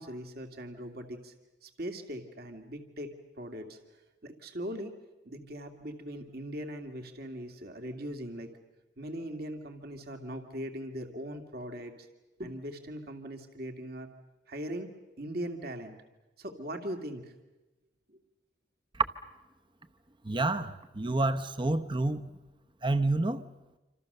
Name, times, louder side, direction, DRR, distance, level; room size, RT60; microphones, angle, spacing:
voice 1, 0.0-1.3 1.6-5.0 5.2-8.5 9.0-12.1 12.4-14.1 14.5-16.0 16.4-17.3 18.1-18.2, equal, 60° right, 6 dB, 2.3 m, -40 dB
voice 2, 20.2-22.2 22.8-23.4, right 2 dB, 30° right, 11 dB, 0.9 m, -28 dB
27.5 x 26.5 x 6.8 m, 1.1 s
head